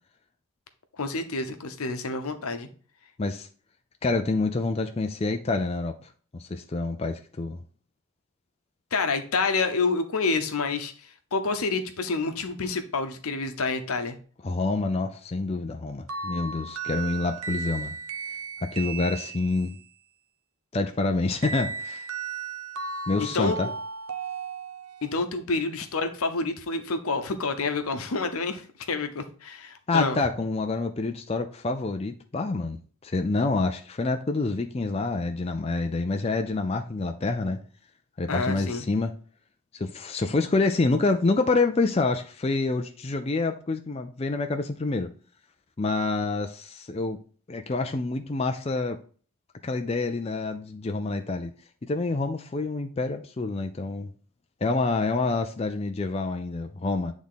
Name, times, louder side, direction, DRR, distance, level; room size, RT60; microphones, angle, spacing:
voice 1, 1.0-2.7 8.9-10.9 11.3-14.2 23.3-23.7 25.0-30.2 38.3-38.8, left 3 dB, 85° left, 7 dB, 0.8 m, -28 dB
voice 2, 4.0-7.6 14.4-17.9 18.6-19.8 20.7-22.1 23.1-23.7 29.9-37.6 38.2-39.1 39.7-45.1 45.8-47.2 47.5-49.0 49.6-51.5 51.8-54.1 54.6-57.1, left 3 dB, 30° left, 6 dB, 0.4 m, -27 dB
sound 1, 16.1-19.8 21.4-25.2, right 5 dB, 80° right, 0.8 m, -35 dB
8.4 x 3.6 x 3.8 m, 0.42 s
head